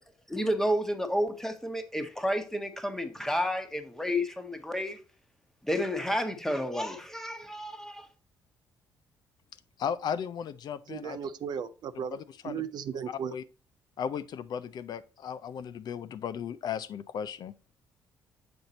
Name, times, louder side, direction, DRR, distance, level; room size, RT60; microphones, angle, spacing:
voice 1, 0.3-5.0 5.6-8.1, equal, 5° left, 1.1 m, -31 dB
voice 2, 9.8-11.2 12.1-12.6 13.1-13.4 14.0-17.5, left 8 dB, 60° left, 0.4 m, -36 dB
voice 3, 10.9-13.3, right 7 dB, 60° right, 0.5 m, -36 dB
6.4 x 4.4 x 4.0 m
supercardioid pair, 70°, 8 cm